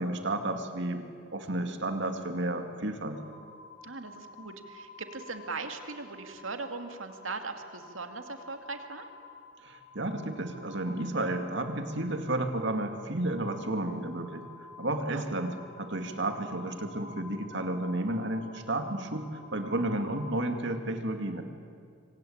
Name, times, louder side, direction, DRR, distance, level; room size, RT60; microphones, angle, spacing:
voice 1, 0.0-3.2 9.6-14.5 14.8-21.4, right 1 dB, 60° right, 6 dB, 2.5 m, -32 dB
sound 1, 3.1-20.4, left 3 dB, 60° left, 5.5 m, -51 dB
voice 2, 3.8-9.1 15.1-15.3, right 3 dB, 85° right, 6 dB, 2.5 m, -39 dB
27.0 x 25.0 x 8.8 m, 2.2 s
head